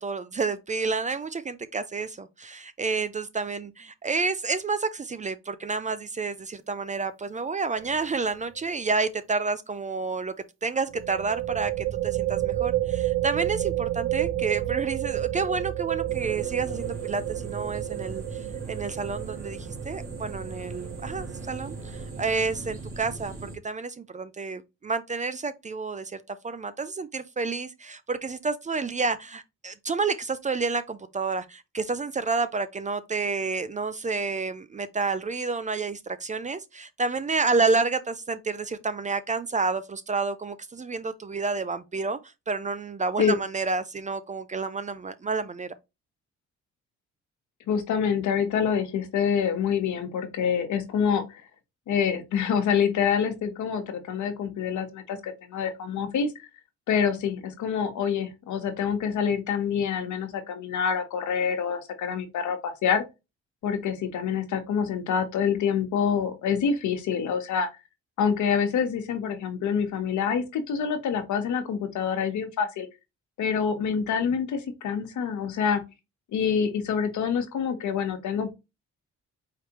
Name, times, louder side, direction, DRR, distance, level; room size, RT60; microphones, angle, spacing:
voice 1, 0.0-10.3 10.6-45.7, right 4 dB, 25° right, 0.4 m, -29 dB
sound 1, 7.8-8.0 8.3-8.4 10.9-22.2, right 14 dB, 65° right, 0.6 m, -30 dB
sound 2, 16.1-23.6, right 3 dB, 45° right, 2.7 m, -39 dB
voice 2, 47.7-51.4 51.9-56.5 56.9-63.0 63.6-67.7 68.2-72.9 73.4-75.8 76.3-78.5, left 7 dB, 75° left, 1.3 m, -26 dB
4.8 x 3.2 x 3.0 m
cardioid pair, 90°, 30 cm